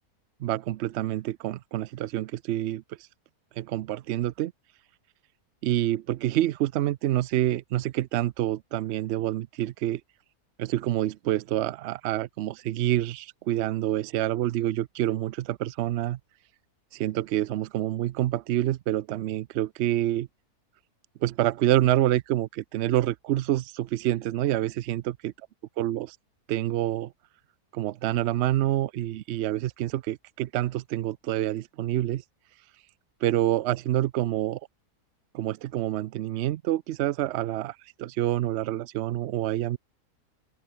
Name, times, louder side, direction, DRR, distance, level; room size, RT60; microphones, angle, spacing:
voice 1, 0.4-2.8 3.6-4.5 5.6-10.0 10.6-16.2 16.9-20.3 21.2-25.3 25.8-26.2 26.5-27.1 27.7-32.2 33.2-34.6 35.3-39.8, right 13 dB, 75° right, 0.6 m, -27 dB
open air
omnidirectional pair, 1.7 m